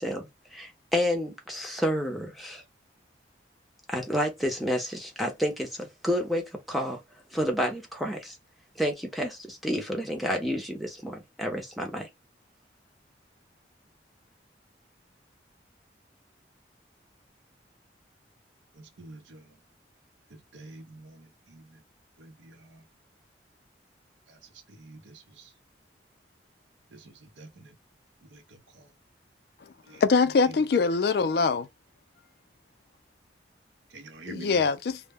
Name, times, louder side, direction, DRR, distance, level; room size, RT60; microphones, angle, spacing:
voice 1, 0.0-2.6 3.9-7.0 7.3-8.4 8.8-12.1, equal, ahead, 0.6 m, -30 dB
voice 2, 18.7-19.6 20.3-21.8 22.2-22.8 24.3-25.5 26.9-27.7 28.2-28.9 29.8-30.0 33.9-34.6, right 2 dB, 85° right, 0.6 m, -48 dB
voice 3, 30.0-31.7 34.3-35.0, left 4 dB, 55° left, 0.3 m, -23 dB
2.1 x 2.1 x 3.4 m
head